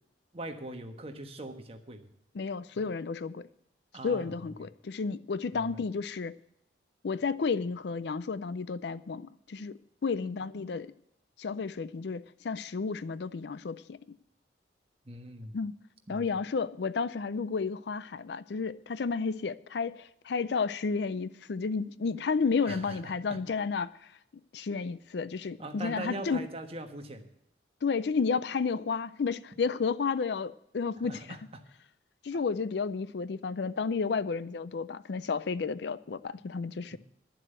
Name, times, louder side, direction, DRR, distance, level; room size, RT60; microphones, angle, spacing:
voice 1, 0.3-2.1 3.9-4.3 5.5-5.8 10.2-10.3 15.0-15.5 16.1-16.2 22.6-23.4 25.6-27.3 31.0-31.4 36.9-37.0, right 1 dB, 30° right, 1.3 m, -41 dB
voice 2, 2.3-3.5 4.0-6.4 7.0-10.9 11.4-14.2 15.5-15.8 16.1-24.1 24.5-26.4 27.8-31.4 32.2-37.0, left 5 dB, 60° left, 0.4 m, -32 dB
11.5 x 7.5 x 7.9 m
head